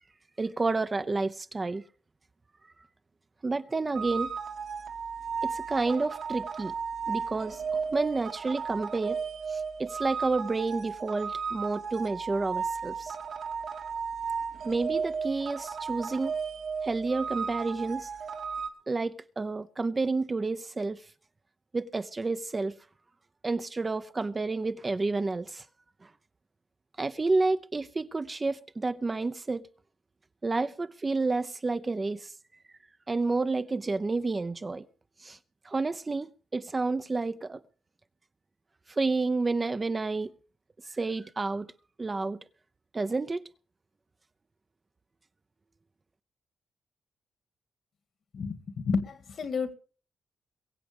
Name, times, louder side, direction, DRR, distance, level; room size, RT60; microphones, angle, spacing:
voice 1, 0.4-1.8 3.4-4.3 5.4-6.7 7.1-9.2 9.5-13.1 14.6-16.4 16.8-18.1 18.9-21.0 21.7-22.8 23.4-25.6 26.0-26.1 27.0-29.7 30.4-32.3 33.1-34.9 35.2-35.4 35.6-37.6 38.9-40.3 40.8-41.7 42.0-42.4 42.9-43.4, right 3 dB, 25° right, 0.7 m, -30 dB
sound 1, 3.9-18.7, right 6 dB, 70° right, 2.3 m, -34 dB
voice 2, 48.3-49.7, left 5 dB, 60° left, 2.1 m, -31 dB
23.0 x 7.6 x 5.2 m
cardioid pair, 105°, 0 cm